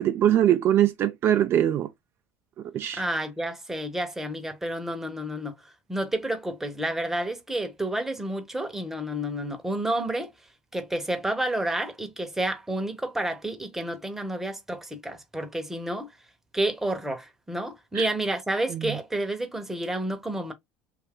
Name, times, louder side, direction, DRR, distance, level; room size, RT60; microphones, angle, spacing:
voice 1, 0.0-1.9 2.7-3.0 18.0-18.1, right 11 dB, 45° right, 0.3 m, -22 dB
voice 2, 2.9-10.3 10.7-16.1 16.5-20.5, right 1 dB, 5° right, 0.8 m, -30 dB
2.6 x 2.4 x 3.5 m
supercardioid pair, 100°, 6 cm